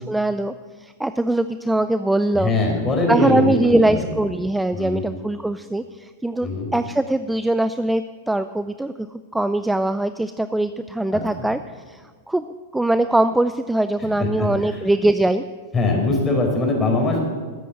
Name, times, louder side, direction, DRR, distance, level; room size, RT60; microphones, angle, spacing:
voice 1, 0.1-2.5 3.1-11.6 11.9-15.4, right 1 dB, 5° right, 12 dB, 0.4 m, -22 dB
voice 2, 2.3-4.1 4.7-5.0 6.4-6.7 11.1-11.5 14.2-14.8 15.7-17.2, left 2 dB, 20° left, 0 dB, 4.4 m, -22 dB
13.5 x 8.3 x 7.8 m, 1.5 s
hypercardioid pair, 100°, 0 cm